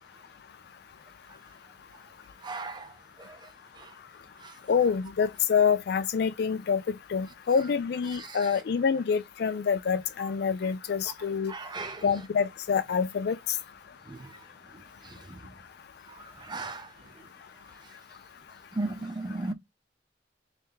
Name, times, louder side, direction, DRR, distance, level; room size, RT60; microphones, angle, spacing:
voice 1, 2.4-2.9 8.3-8.4 11.5-12.0 14.1-14.2 16.5-16.9 18.8-19.5, right 2 dB, 25° right, 0.6 m, -34 dB
voice 2, 4.7-6.8 7.1-11.5 12.0-13.4, left 6 dB, 65° left, 0.4 m, -26 dB
3.3 x 2.8 x 3.6 m
head